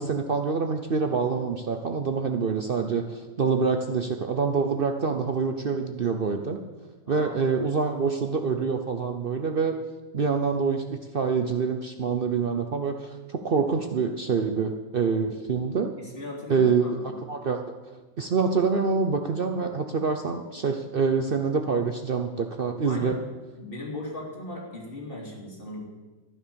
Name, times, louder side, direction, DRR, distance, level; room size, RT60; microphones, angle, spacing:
voice 1, 0.0-6.6 7.1-9.8 10.1-16.0 16.5-17.6 18.2-23.2, right 5 dB, 90° right, 6 dB, 0.4 m, -26 dB
voice 2, 7.0-7.4 16.0-17.1 22.9-23.2 23.6-25.8, left 1 dB, 25° left, -2 dB, 3.3 m, -38 dB
13.0 x 10.5 x 6.9 m, 1.2 s
omnidirectional pair, 2.1 m